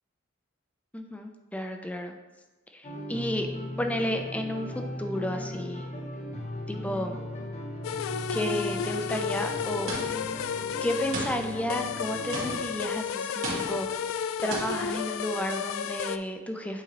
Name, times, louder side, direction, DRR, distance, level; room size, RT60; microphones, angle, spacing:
voice 1, 0.9-2.1 2.7-3.5 3.8-5.9 6.7-7.2 8.3-10.4 10.8-14.1 14.4-16.8, left 1 dB, 5° left, 4 dB, 0.4 m, -32 dB
sound 1, 2.8-12.6, left 1 dB, 35° left, 0.8 m, -37 dB
sound 2, 7.8-16.2, left 7 dB, 85° left, 0.3 m, -32 dB
sound 3, 9.9-10.4 11.1-11.7 12.3-12.9 13.4-14.0 14.5-14.9, right 2 dB, 90° right, 1.8 m, -35 dB
8.4 x 4.0 x 3.0 m, 1.2 s
head